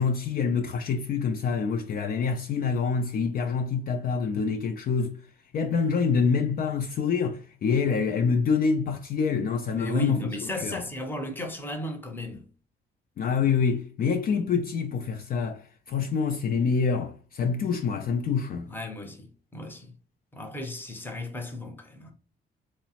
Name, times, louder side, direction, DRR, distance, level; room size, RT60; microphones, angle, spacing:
voice 1, 0.0-5.2 5.5-10.2 10.6-10.8 13.2-15.6 15.9-18.7, left 5 dB, 50° left, 0.4 m, -26 dB
voice 2, 9.7-12.4 18.7-19.9 20.3-22.1, left 1 dB, 10° left, 0.7 m, -34 dB
3.0 x 2.0 x 2.9 m
cardioid pair, 90°, 20 cm